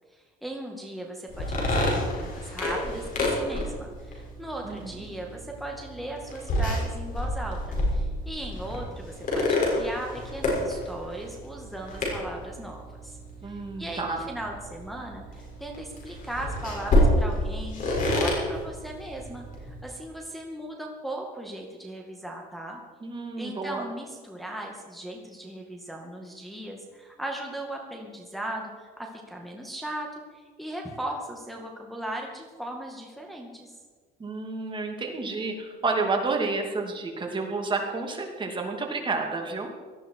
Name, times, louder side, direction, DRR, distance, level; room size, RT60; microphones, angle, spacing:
voice 1, 0.1-22.8 23.4-33.7, right 1 dB, ahead, -1 dB, 2.1 m, -38 dB
sound 1, 1.3-19.8, left 1 dB, 50° left, 6.1 m, -29 dB
voice 2, 4.6-5.0 13.4-14.2 23.0-23.8 34.2-39.7, right 3 dB, 30° right, 2 dB, 2.7 m, -30 dB
18.5 x 13.5 x 4.7 m, 1.5 s
cardioid pair, 110°, 17 cm